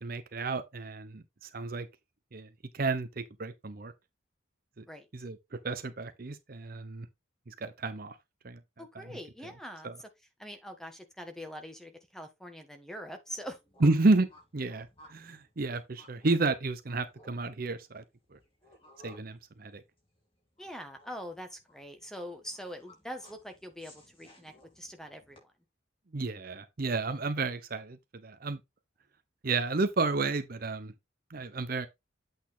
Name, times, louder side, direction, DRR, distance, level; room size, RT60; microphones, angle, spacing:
voice 1, 0.0-1.9 2.3-3.9 4.8-4.9 5.1-5.4 5.6-7.1 7.5-8.2 8.4-8.6 8.9-9.1 9.8-10.0 13.8-14.3 14.5-18.0 18.3-18.4 19.0-19.8 26.1-28.0 28.2-28.6 29.4-30.9 31.3-31.9, right 3 dB, 45° right, 0.7 m, -31 dB
voice 2, 8.8-10.1 10.4-13.6 20.6-25.5, equal, ahead, 1.2 m, -43 dB
sound 1, 13.3-25.4, equal, 25° left, 3.5 m, -59 dB
8.4 x 4.0 x 3.9 m
head